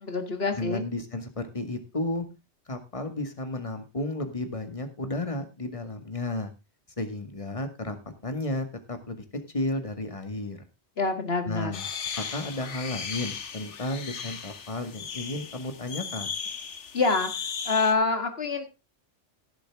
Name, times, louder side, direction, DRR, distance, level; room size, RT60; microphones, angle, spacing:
voice 1, 0.0-0.8 11.0-11.7 16.9-17.3 17.7-18.6, left 4 dB, 55° left, 7 dB, 2.0 m, -26 dB
voice 2, 0.5-2.3 2.7-6.5 7.0-9.2 9.5-10.6 11.5-11.9 12.2-16.3, left 2 dB, 30° left, 8 dB, 1.9 m, -33 dB
sound 1, 11.7-17.9, left 6 dB, 75° left, 1.5 m, -36 dB
16.5 x 7.4 x 3.6 m, 0.27 s
omnidirectional pair, 1.2 m